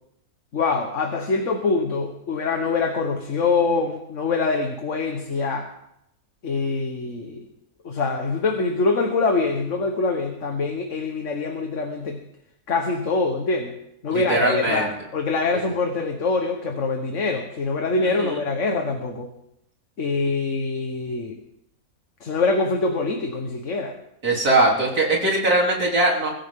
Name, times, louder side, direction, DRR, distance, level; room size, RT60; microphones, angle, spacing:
voice 1, 0.5-5.7 6.4-7.5 7.8-12.2 12.7-13.7 14.0-19.3 20.0-21.4 22.2-23.9, left 3 dB, 55° left, 3 dB, 1.7 m, -24 dB
voice 2, 14.1-14.9 18.0-18.4 24.2-26.3, right 2 dB, 80° right, -2 dB, 3.9 m, -21 dB
23.5 x 14.5 x 3.8 m, 0.80 s
omnidirectional pair, 1.6 m